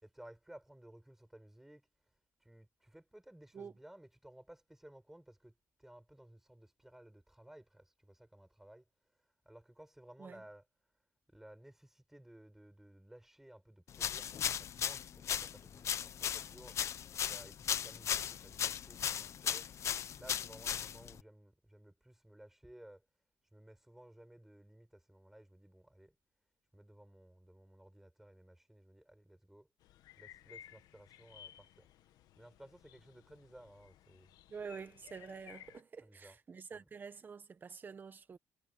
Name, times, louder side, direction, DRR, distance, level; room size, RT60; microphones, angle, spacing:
voice 1, 0.0-1.9 2.4-8.8 9.4-10.7 11.3-16.8 17.3-19.7 20.2-23.0 23.5-26.2 26.7-29.7 30.2-31.9 32.4-34.3 36.0-36.4 36.7-36.9, right 1 dB, 5° right, 5.9 m, -57 dB
sound 1, 13.9-21.2, left 9 dB, 50° left, 0.7 m, -37 dB
sound 2, 29.8-35.8, left 11 dB, 90° left, 1.3 m, -58 dB
voice 2, 34.5-38.4, right 6 dB, 30° right, 1.3 m, -48 dB
cardioid pair, 140°, 6 cm